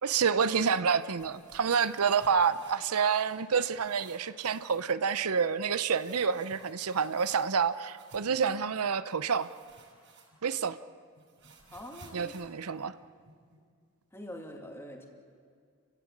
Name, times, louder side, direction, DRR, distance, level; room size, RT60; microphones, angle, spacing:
voice 1, 0.0-9.5 10.4-10.8 12.1-12.9, right 6 dB, 90° right, 14 dB, 0.7 m, -28 dB
sound 1, 1.0-3.5 3.7-4.9 5.9-8.4 9.3-10.6 10.9-13.6, right 3 dB, 55° right, 6.9 m, -56 dB
voice 2, 11.7-12.4 14.1-15.1, equal, 10° left, 1 dB, 2.4 m, -44 dB
29.5 x 16.0 x 8.5 m, 2.1 s
head